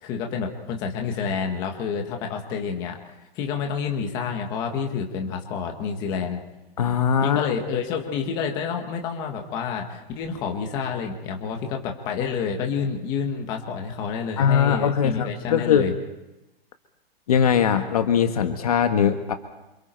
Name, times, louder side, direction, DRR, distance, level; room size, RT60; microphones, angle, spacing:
voice 1, 0.0-6.4 7.2-15.9, left 6 dB, 15° left, 3 dB, 1.5 m, -29 dB
voice 2, 6.8-7.5 14.4-15.9 17.3-19.3, left 8 dB, 40° left, 7 dB, 1.4 m, -21 dB
28.0 x 28.0 x 4.5 m, 0.98 s
hypercardioid pair, 180°, 31 cm